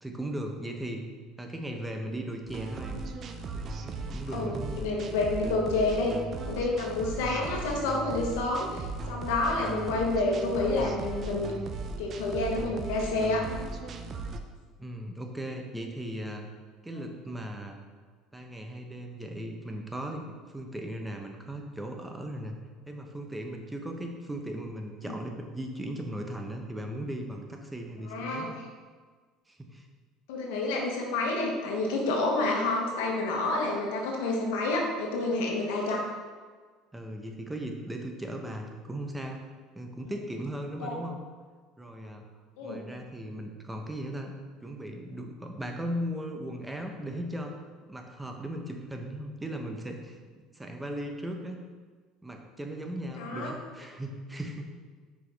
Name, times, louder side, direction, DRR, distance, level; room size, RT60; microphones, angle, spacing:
voice 1, 0.0-1.0 1.4-3.0 3.5-4.8 14.8-16.4 16.8-17.8 18.3-22.6 22.9-28.5 29.5-29.9 36.9-39.4 39.7-41.2 41.8-42.3 42.6-44.3 44.6-47.5 47.9-51.6 52.2-54.7, right 1 dB, 10° right, 3 dB, 0.8 m, -37 dB
sound 1, 2.5-14.4, right 4 dB, 40° right, 0.5 m, -37 dB
voice 2, 4.3-6.2 6.4-11.5 12.0-13.4 25.1-25.2 28.1-28.5 30.3-36.0 40.8-41.0 42.6-42.8 53.2-53.5, left 2 dB, 85° left, 0 dB, 1.1 m, -29 dB
6.1 x 5.0 x 3.4 m, 1.5 s
supercardioid pair, 100°, 0 cm